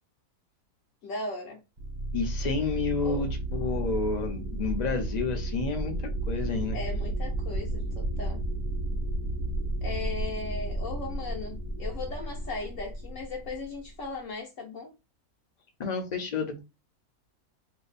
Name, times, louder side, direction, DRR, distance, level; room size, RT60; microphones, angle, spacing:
voice 1, 1.0-1.6 3.0-3.3 6.7-8.4 9.8-14.9, left 3 dB, 65° left, 1.0 m, -37 dB
sound 1, 1.8-14.0, right 1 dB, 40° right, 1.0 m, -32 dB
voice 2, 2.1-6.8 15.8-16.6, left 4 dB, 45° left, 0.6 m, -30 dB
2.8 x 2.2 x 4.0 m
omnidirectional pair, 1.6 m